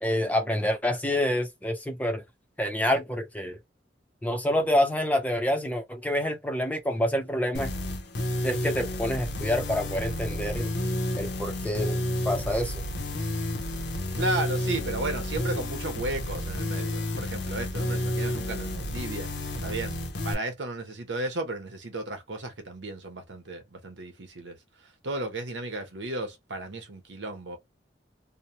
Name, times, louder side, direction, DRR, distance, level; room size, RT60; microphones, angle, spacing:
voice 1, 0.0-2.2 2.6-3.6 4.2-7.7 8.4-10.7 11.2-12.0 12.2-12.8, left 1 dB, 10° left, 0.7 m, -27 dB
sound 1, 7.5-20.3, left 1 dB, 65° left, 0.8 m, -31 dB
voice 2, 14.1-19.3 19.6-20.0 20.2-24.6 25.0-27.6, right 2 dB, 85° right, 1.0 m, -34 dB
2.8 x 2.2 x 2.8 m
head